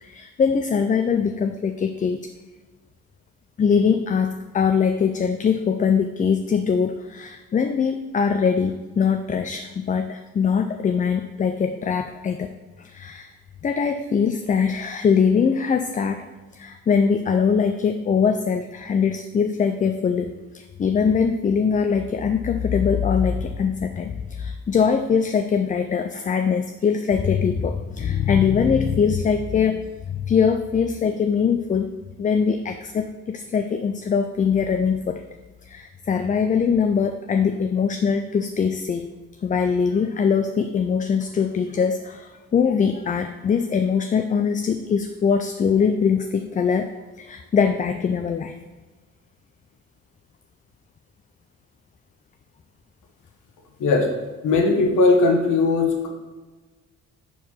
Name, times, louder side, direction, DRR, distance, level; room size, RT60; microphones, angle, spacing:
voice 1, 0.0-2.2 3.6-12.5 12.8-13.3 13.6-16.2 16.5-29.9 30.1-31.9 32.2-35.2 35.7-39.1 39.4-48.5, left 6 dB, 25° left, 7 dB, 0.3 m, -22 dB
voice 2, 54.4-56.1, left 3 dB, 80° left, 2 dB, 1.3 m, -18 dB
4.6 x 4.6 x 5.6 m, 1.3 s
cardioid pair, 90°, 30 cm